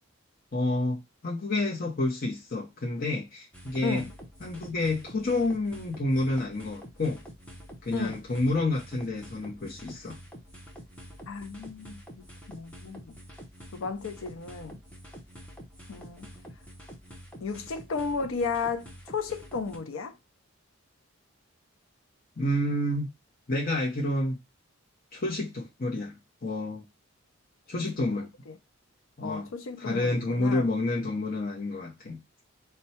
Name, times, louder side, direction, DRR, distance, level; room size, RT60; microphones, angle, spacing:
voice 1, 0.5-4.0 4.4-7.2 7.8-10.2 22.4-23.1 23.5-24.4 25.1-26.1 26.4-26.8 27.7-28.3 29.2-29.5 29.8-32.2, left 2 dB, 45° left, 0.8 m, -29 dB
sound 1, 3.5-19.8, equal, 5° left, 0.7 m, -47 dB
voice 2, 11.3-12.0 12.5-13.2 13.7-14.8 15.9-16.3 17.4-20.1 28.1-28.5 29.2-30.6, left 5 dB, 70° left, 0.5 m, -34 dB
4.4 x 2.2 x 4.1 m
head